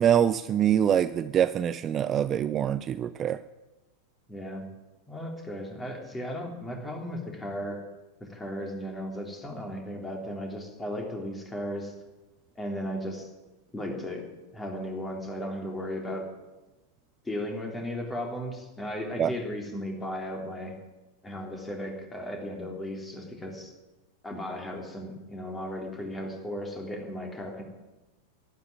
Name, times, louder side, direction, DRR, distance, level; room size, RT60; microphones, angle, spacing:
voice 1, 0.0-3.4 19.2-19.3, right 9 dB, 25° right, 14 dB, 0.4 m, -24 dB
voice 2, 4.3-4.7 5.1-7.8 8.2-11.9 12.6-13.3 13.7-16.3 17.3-20.7 21.2-23.7 24.2-27.6, equal, 10° left, 1 dB, 3.5 m, -35 dB
11.5 x 11.5 x 9.5 m, 1.1 s
figure-of-eight pair, 90°, 0 cm